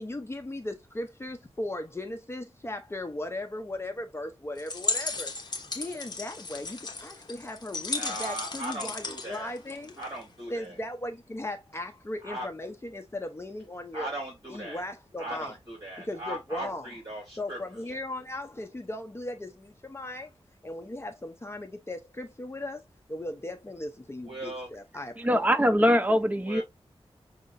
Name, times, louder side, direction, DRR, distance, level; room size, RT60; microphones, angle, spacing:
voice 1, 0.0-5.3 5.7-10.0 10.5-14.1 14.5-15.6 16.0-17.0 17.4-20.3 20.6-25.2, left 1 dB, 25° left, 0.6 m, -37 dB
sound 1, 4.6-10.2, left 3 dB, 40° left, 1.0 m, -35 dB
voice 2, 8.0-9.5 10.0-10.7 12.2-12.5 13.9-14.8 15.2-17.6 24.3-24.7 26.5-26.6, right 1 dB, 45° right, 2.7 m, -38 dB
voice 3, 25.2-26.6, equal, 15° right, 0.6 m, -22 dB
6.4 x 2.9 x 2.6 m
wide cardioid pair, 105°, 11 cm